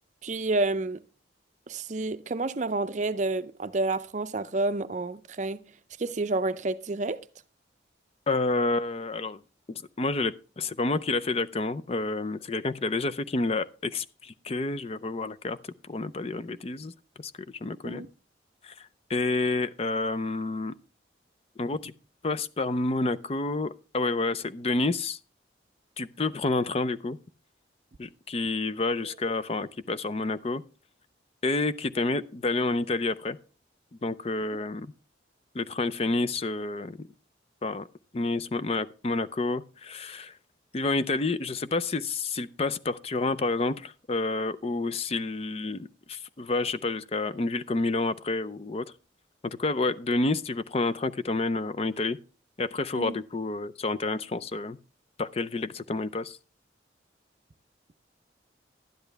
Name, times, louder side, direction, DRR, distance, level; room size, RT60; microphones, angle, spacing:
voice 1, 0.2-1.0 1.7-5.6 6.0-7.2 17.8-18.1 52.9-53.2, right 2 dB, 40° right, 0.5 m, -29 dB
voice 2, 8.3-9.4 9.7-15.6 15.9-16.9 17.2-17.3 17.6-18.0 18.6-20.7 21.6-21.9 22.2-25.2 26.0-27.2 28.0-30.6 31.4-33.4 34.0-34.9 35.5-37.1 37.6-37.9 38.1-40.3 40.7-48.8 49.4-52.2 52.6-54.8 55.2-56.4, left 3 dB, 35° left, 0.5 m, -29 dB
12.0 x 10.5 x 3.4 m
head